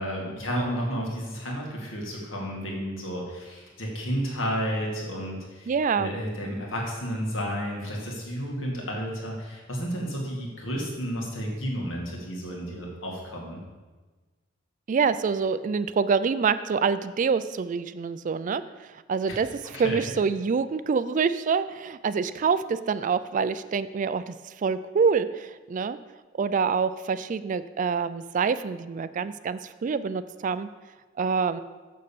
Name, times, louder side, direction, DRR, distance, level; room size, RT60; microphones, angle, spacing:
voice 1, 0.0-13.6 19.3-19.4 19.7-20.0, equal, 85° left, -1 dB, 2.2 m, -32 dB
voice 2, 5.7-6.1 14.9-18.6 19.1-19.5 19.8-26.0 26.4-30.7 31.2-31.6, right 5 dB, 40° right, 13 dB, 0.3 m, -26 dB
6.6 x 6.5 x 7.1 m, 1.3 s
head